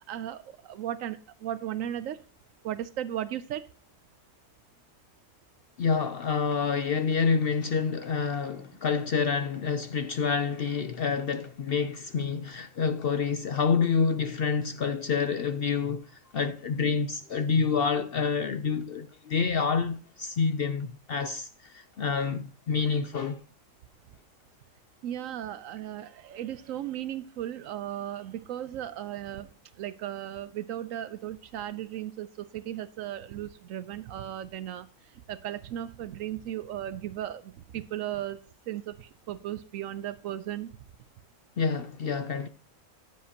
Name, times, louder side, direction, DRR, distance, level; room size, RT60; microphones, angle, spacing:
voice 1, 0.1-2.2 2.6-3.7 25.0-38.4 38.7-40.7, right 11 dB, 80° right, 1.0 m, -36 dB
voice 2, 5.8-16.0 16.3-23.4 41.6-42.5, left 5 dB, 60° left, 0.7 m, -28 dB
15.0 x 7.4 x 2.8 m
omnidirectional pair, 1.4 m